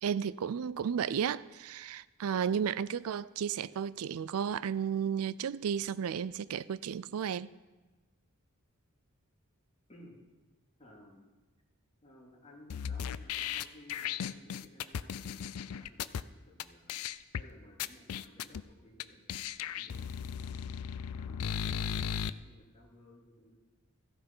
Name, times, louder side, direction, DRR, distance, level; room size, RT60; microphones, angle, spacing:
voice 1, 0.0-7.5, right 7 dB, 75° right, 0.4 m, -33 dB
voice 2, 10.8-11.3 12.0-16.9 17.3-19.2 19.5-23.6, left 1 dB, 30° left, 2.6 m, -58 dB
sound 1, 12.7-16.2 16.6-16.7 16.9-17.4 17.8-18.6 19.0-19.1 19.3-22.3, left 8 dB, 80° left, 0.4 m, -36 dB
14.5 x 8.7 x 5.5 m
head